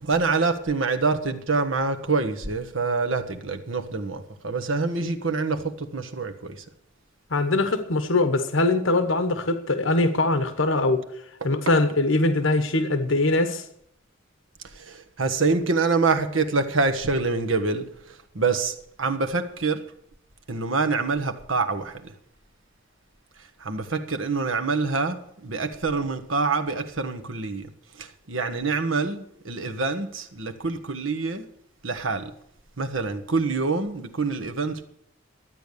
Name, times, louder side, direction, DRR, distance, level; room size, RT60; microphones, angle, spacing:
voice 1, 0.0-6.6 11.4-11.5 14.8-17.8 18.3-19.8 20.5-22.0 23.6-27.7 28.0-31.4 31.8-32.3 32.8-34.8, right 4 dB, 80° right, 7 dB, 1.3 m, -26 dB
voice 2, 7.3-11.0 11.4-13.6, left 2 dB, 75° left, 9 dB, 1.2 m, -22 dB
12.5 x 9.1 x 6.8 m, 0.70 s
head